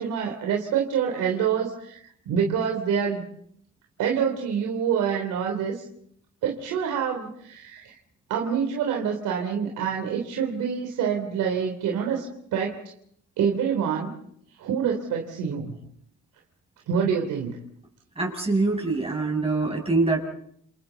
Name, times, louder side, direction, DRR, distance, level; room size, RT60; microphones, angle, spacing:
voice 1, 0.0-3.2 4.0-5.8 6.4-8.0 8.3-12.8 13.4-14.1 14.6-15.7 16.9-17.6, right 7 dB, 85° right, 1 dB, 3.4 m, -26 dB
voice 2, 18.2-20.2, right 3 dB, 20° right, 0 dB, 6.9 m, -24 dB
29.5 x 29.0 x 4.0 m, 0.67 s
cardioid pair, 90°, 30 cm